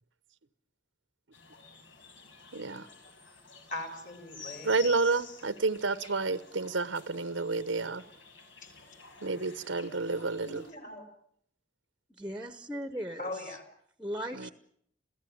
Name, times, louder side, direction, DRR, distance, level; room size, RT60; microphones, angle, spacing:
sound 1, 1.3-10.7, left 5 dB, 85° left, 6.3 m, -51 dB
voice 1, 2.5-2.9 4.6-8.0 9.2-10.6 14.3-14.5, right 3 dB, 85° right, 1.0 m, -30 dB
voice 2, 3.7-4.8 8.6-8.7 10.4-11.1 12.7-12.8 13.2-13.7, left 2 dB, 40° left, 4.7 m, -40 dB
voice 3, 12.2-13.6 14.0-14.5, equal, 5° right, 1.0 m, -38 dB
28.0 x 16.5 x 8.7 m
head